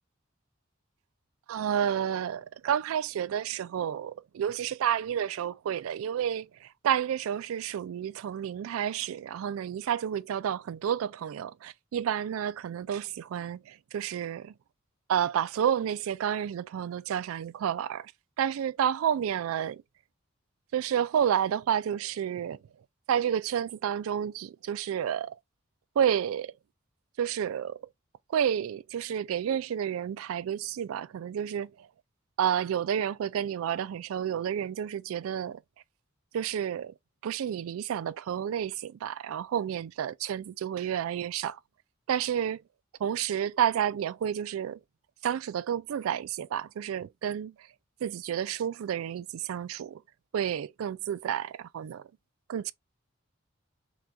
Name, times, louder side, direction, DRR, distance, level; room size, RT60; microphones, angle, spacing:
voice 1, 1.5-14.5 15.1-18.1 18.4-19.8 20.7-22.6 23.1-25.3 26.0-26.5 27.2-27.8 28.3-31.9 32.4-35.6 36.3-36.9 37.2-41.6 42.1-42.6 43.0-44.8 45.2-47.5 48.0-50.0 50.3-52.1 52.5-52.7, right 9 dB, 85° right, 0.3 m, -30 dB
5.9 x 2.3 x 2.4 m
head